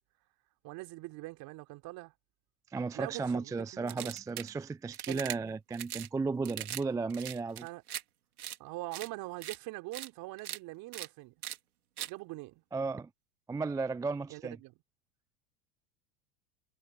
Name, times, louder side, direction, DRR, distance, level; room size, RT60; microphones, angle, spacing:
voice 1, 0.6-2.1 2.9-4.1 5.1-5.2 6.5-6.7 7.6-7.8 8.6-11.3 12.1-12.6 14.3-14.7, right 21 dB, 55° right, 3.5 m, -43 dB
voice 2, 2.7-7.7 12.7-13.1 13.5-14.6, right 4 dB, 10° right, 0.4 m, -34 dB
sound 1, 3.9-4.5 4.9-5.4 5.7-6.1 6.4-6.8 7.1-8.0 8.4-8.6 8.9-9.1 9.4-9.6 9.9-10.1 10.4-10.6 10.9-11.1 11.4-11.6 12.0-12.1, right 12 dB, 85° right, 3.5 m, -40 dB
hypercardioid pair, 95°, 43 cm